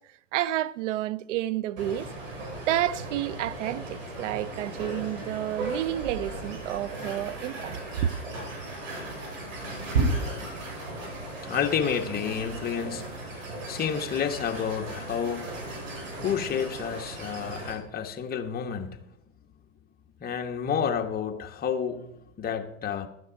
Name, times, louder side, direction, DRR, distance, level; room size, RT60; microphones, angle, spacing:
voice 1, 0.3-2.1 2.7-8.1, right 12 dB, 70° right, 0.7 m, -30 dB
sound 1, 1.8-17.7, right 2 dB, 85° right, 6.4 m, -35 dB
voice 2, 11.4-15.5 16.2-19.0 20.2-22.1 22.4-23.1, left 7 dB, 25° left, 1.3 m, -30 dB
12.5 x 9.5 x 5.2 m
hypercardioid pair, 110°, 39 cm